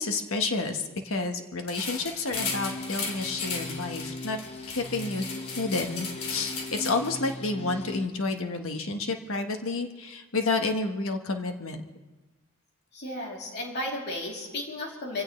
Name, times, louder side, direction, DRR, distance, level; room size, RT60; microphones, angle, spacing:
voice 1, 0.0-4.4 4.7-5.3 5.5-11.8, left 3 dB, 70° left, 5 dB, 1.4 m, -30 dB
sound 1, 1.7-7.3, left 4 dB, 90° left, 2.4 m, -36 dB
sound 2, 2.3-8.1, left 2 dB, 30° left, 0.8 m, -40 dB
voice 2, 12.9-15.2, left 1 dB, 55° left, -1 dB, 3.2 m, -34 dB
26.0 x 16.0 x 3.2 m, 1.2 s
head